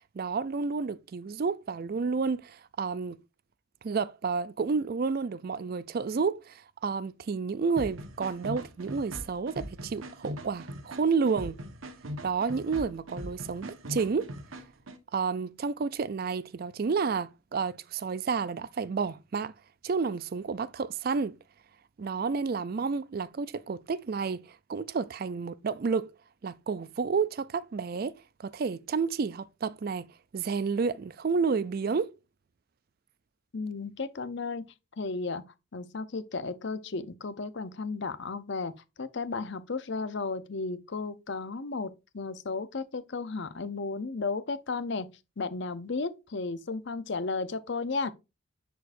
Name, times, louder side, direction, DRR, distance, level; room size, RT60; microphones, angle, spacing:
voice 1, 0.1-3.2 3.8-11.6 12.2-14.3 15.1-19.5 19.8-21.4 22.0-26.1 26.4-30.1 30.3-32.1, right 5 dB, 45° right, 0.4 m, -30 dB
sound 1, 7.8-15.0, equal, 80° right, 1.2 m, -41 dB
voice 2, 33.5-34.6 35.0-35.4 35.7-38.7 39.0-45.1 45.4-48.1, left 4 dB, 55° left, 0.6 m, -34 dB
10.5 x 4.6 x 2.6 m
head